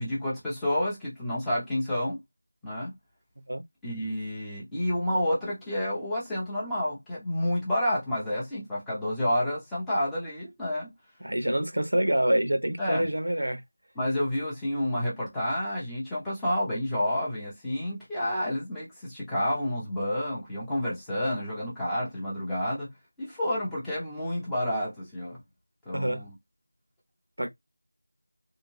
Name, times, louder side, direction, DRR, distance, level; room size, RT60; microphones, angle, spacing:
voice 1, 0.0-2.2 2.6-2.9 3.8-10.9 12.8-13.1 14.0-22.9 23.2-25.4 25.9-26.3, left 1 dB, ahead, 0.6 m, -29 dB
voice 2, 11.2-13.6 25.9-26.2 27.4-27.5, right 1 dB, 80° right, 1.0 m, -26 dB
3.4 x 2.8 x 2.7 m
figure-of-eight pair, 180°, 0 cm